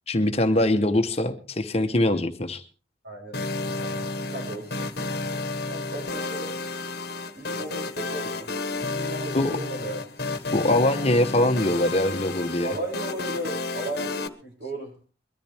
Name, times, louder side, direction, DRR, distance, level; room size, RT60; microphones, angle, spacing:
voice 1, 0.1-2.6 9.3-9.6 10.5-12.7, left 1 dB, 30° left, 7 dB, 1.0 m, -23 dB
voice 2, 3.0-6.5 7.3-8.5 8.8-10.0 12.6-14.9, right 1 dB, 60° right, 0 dB, 6.3 m, -36 dB
sound 1, 3.3-14.3, left 3 dB, 50° left, 1.2 m, -31 dB
22.0 x 13.5 x 3.5 m, 0.36 s
head